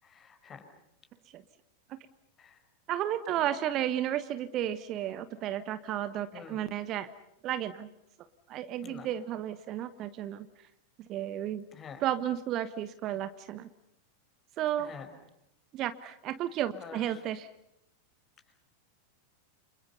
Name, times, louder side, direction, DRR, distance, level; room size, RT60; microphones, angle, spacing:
voice 1, 0.0-0.7 2.4-2.6 3.3-3.5 6.3-6.6 8.8-9.1 11.7-12.0 14.8-15.1 16.7-17.2 18.5-18.6, left 6 dB, 25° left, 7 dB, 5.2 m, -48 dB
voice 2, 2.9-7.1 7.4-7.9 8.5-10.5 11.1-11.7 12.0-13.7 14.6-14.9 15.7-17.5, right 11 dB, 35° right, 12 dB, 1.3 m, -33 dB
29.5 x 28.0 x 5.6 m, 0.80 s
figure-of-eight pair, 90°, 0 cm